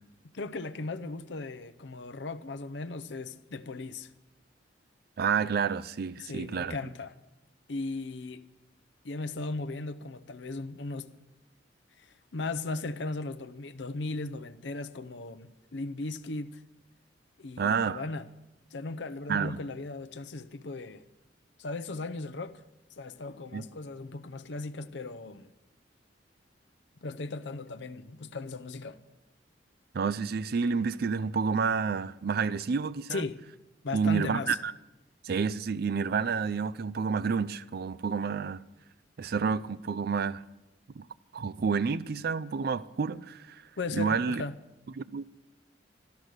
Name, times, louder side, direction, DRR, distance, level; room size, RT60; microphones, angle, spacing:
voice 1, 0.3-4.1 6.2-7.1 7.7-8.5 9.0-11.1 12.0-16.6 17.4-18.3 18.7-21.0 21.6-22.6 23.0-25.5 27.0-29.0 33.1-33.5 33.8-34.6 43.8-44.5, left 3 dB, 65° left, 0.7 m, -37 dB
voice 2, 5.2-6.8 17.6-18.0 19.3-19.6 23.5-23.6 29.9-33.2 33.9-34.7 35.2-38.6 39.2-40.4 41.0-41.1 41.3-43.6 44.0-44.4 45.0-45.2, right 5 dB, 55° right, 0.4 m, -29 dB
13.0 x 12.0 x 6.4 m
head